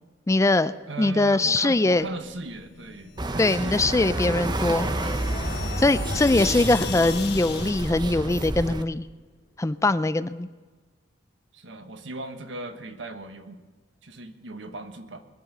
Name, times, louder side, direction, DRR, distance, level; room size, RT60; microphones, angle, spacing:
voice 1, 0.3-2.1 3.4-4.9 5.8-9.1 9.6-10.5, left 2 dB, 15° left, 14 dB, 0.4 m, -22 dB
voice 2, 0.8-4.4 6.1-6.5 11.5-13.6 14.0-15.2, right 2 dB, 90° right, 7 dB, 1.4 m, -38 dB
sound 1, 3.2-8.8, right 1 dB, 25° right, 0.7 m, -30 dB
sound 2, 3.5-8.0, left 4 dB, 60° left, 1.1 m, -35 dB
sound 3, 9.3-9.9, left 1 dB, 30° left, 1.5 m, -51 dB
21.5 x 7.5 x 6.7 m, 1.3 s
head